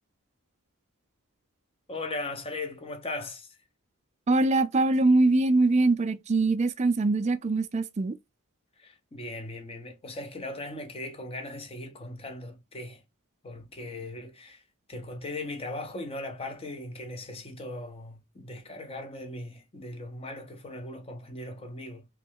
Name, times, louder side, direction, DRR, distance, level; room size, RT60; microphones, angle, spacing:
voice 1, 1.9-3.6 8.8-13.0 13.4-14.6 14.9-22.1, left 2 dB, 25° left, 0.7 m, -38 dB
voice 2, 4.3-8.1, right 2 dB, 30° right, 0.3 m, -23 dB
3.1 x 3.1 x 3.4 m
head